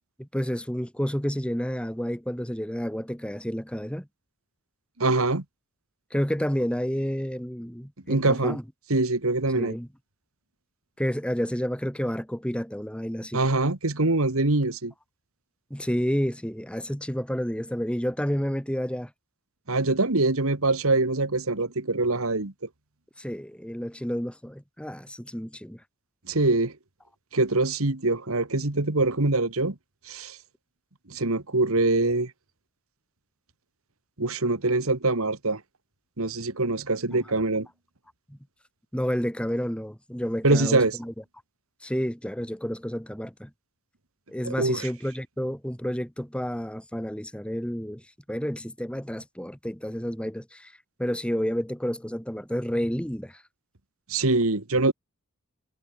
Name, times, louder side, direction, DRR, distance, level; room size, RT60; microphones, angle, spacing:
voice 1, 0.2-4.1 6.1-8.6 9.5-9.9 11.0-13.4 15.7-19.1 23.2-25.8 37.1-37.2 38.3-38.4 38.9-41.1 41.8-43.5 44.3-48.0 48.3-50.7 51.0-53.4, equal, 5° left, 3.2 m, -30 dB
voice 2, 5.0-5.4 8.1-8.6 8.9-9.7 13.3-14.9 19.7-22.5 26.3-26.7 27.3-29.8 30.1-30.4 31.1-32.3 34.2-35.6 36.2-37.7 40.4-40.9 44.5-44.9 54.1-54.9, right 2 dB, 65° right, 2.0 m, -24 dB
head